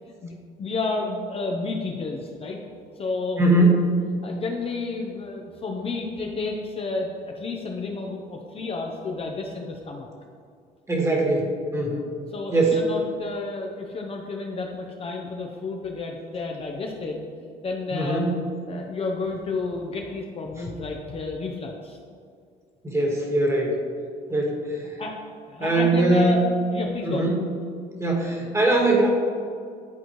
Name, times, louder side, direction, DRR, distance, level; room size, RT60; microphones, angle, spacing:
voice 1, 0.1-2.6 3.0-3.5 4.2-10.1 12.3-18.2 18.7-22.0 25.0-25.2 25.5-26.4 26.7-27.3, left 3 dB, 35° left, 1 dB, 0.7 m, -31 dB
voice 2, 3.4-3.8 10.9-12.1 12.5-12.8 17.9-18.4 22.8-23.8 24.3-24.9 25.6-26.5 27.1-27.3 28.0-29.1, right 2 dB, 15° right, -1 dB, 1.5 m, -21 dB
11.0 x 4.1 x 3.1 m, 2.2 s
cardioid pair, 110°, 17 cm